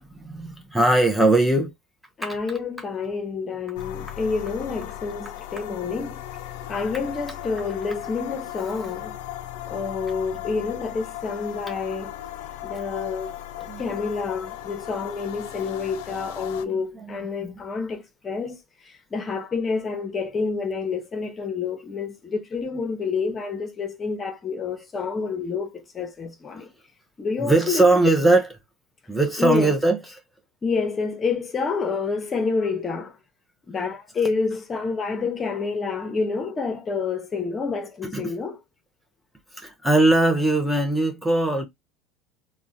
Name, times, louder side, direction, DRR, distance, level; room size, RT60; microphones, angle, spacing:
voice 1, 0.2-1.7 2.2-2.3 13.7-13.9 16.6-17.6 27.4-28.6 29.1-30.2 38.1-38.3 39.5-41.7, right 2 dB, 5° right, 0.6 m, -21 dB
voice 2, 2.2-6.2 6.7-9.2 9.7-12.1 12.6-13.3 13.6-18.6 19.1-26.7 27.2-28.0 29.4-29.7 30.6-33.1 33.7-38.6, left 4 dB, 30° left, 0.7 m, -28 dB
sound 1, 3.8-16.7, left 13 dB, 80° left, 0.3 m, -37 dB
3.5 x 2.1 x 2.6 m
supercardioid pair, 105°, 0 cm